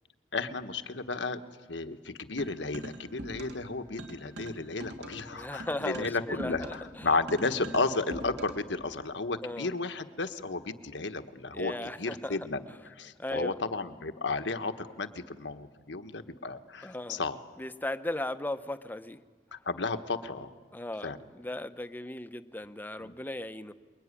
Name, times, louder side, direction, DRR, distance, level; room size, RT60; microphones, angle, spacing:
voice 1, 0.3-1.4 1.7-11.7 12.0-12.7 13.0-17.4 19.5-20.5 21.0-21.2 23.0-23.2, left 3 dB, 80° left, 8 dB, 1.4 m, -33 dB
sound 1, 2.4-3.7 4.0-8.7, right 1 dB, 65° right, 3.3 m, -43 dB
voice 2, 5.3-7.1 9.4-9.7 11.5-12.4 13.2-13.5 16.8-17.2 17.6-19.2 20.7-23.7, left 1 dB, 10° left, 11 dB, 0.9 m, -37 dB
27.5 x 22.0 x 9.9 m, 1.5 s
head